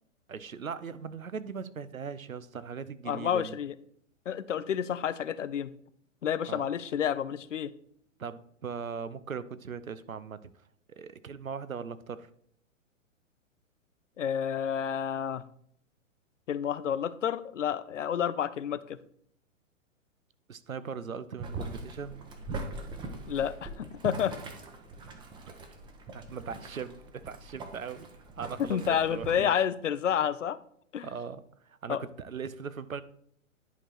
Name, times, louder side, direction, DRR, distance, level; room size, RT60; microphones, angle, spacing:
voice 1, 0.3-3.6 6.5-6.7 8.2-10.5 10.9-12.3 20.5-22.2 25.0-25.1 26.1-28.1 28.4-28.8 29.1-29.5 31.0-31.4 31.8-33.0, right 6 dB, 85° right, 15 dB, 0.7 m, -39 dB
voice 2, 3.1-3.7 4.3-5.7 6.2-7.7 14.2-15.4 16.5-19.0 23.3-24.3 28.6-30.6 30.9-31.1 31.9-32.0, left 8 dB, 65° left, 15 dB, 0.6 m, -30 dB
Boiling, 21.4-29.3, right 3 dB, 10° right, 0.8 m, -42 dB
10.5 x 5.0 x 4.3 m, 0.66 s
figure-of-eight pair, 115°, 40 cm